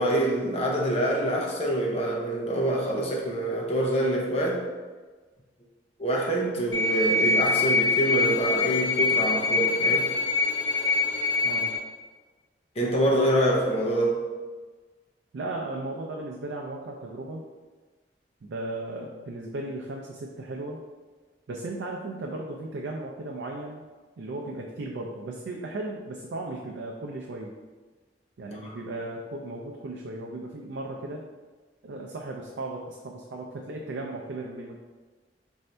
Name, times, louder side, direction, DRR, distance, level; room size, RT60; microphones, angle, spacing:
voice 1, 0.0-4.7 6.0-10.1 12.8-14.2 28.6-28.7, right 1 dB, 35° left, -2 dB, 0.7 m, -26 dB
sound 1, 6.7-11.8, left 3 dB, 80° left, 0.6 m, -24 dB
voice 2, 15.3-17.4 18.4-20.8 21.5-23.8 24.2-27.5 28.4-31.2 31.8-34.8, right 2 dB, 85° right, -1 dB, 0.4 m, -36 dB
4.2 x 2.6 x 3.3 m, 1.3 s
head